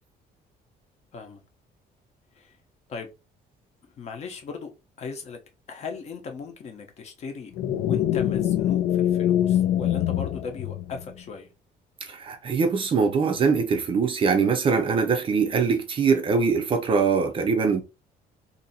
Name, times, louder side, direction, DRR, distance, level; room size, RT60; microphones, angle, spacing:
voice 1, 4.0-4.7 5.0-5.4 5.7-7.5 7.8-11.5, left 5 dB, 40° left, 0.8 m, -38 dB
sound 1, 7.6-11.2, left 11 dB, 60° left, 0.4 m, -24 dB
voice 2, 12.0-17.8, right 5 dB, 30° right, 0.5 m, -22 dB
2.7 x 2.7 x 4.1 m
cardioid pair, 180°, 17 cm